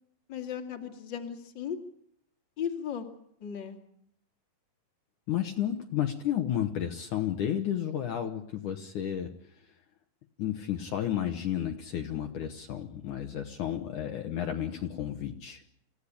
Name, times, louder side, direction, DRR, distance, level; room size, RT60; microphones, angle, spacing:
voice 1, 0.3-1.8 2.6-3.1 3.4-3.8, left 8 dB, 35° left, 4 dB, 2.4 m, -36 dB
voice 2, 5.3-9.3 10.4-15.6, left 10 dB, 65° left, 3 dB, 2.5 m, -32 dB
28.0 x 16.5 x 8.7 m, 0.74 s
omnidirectional pair, 4.2 m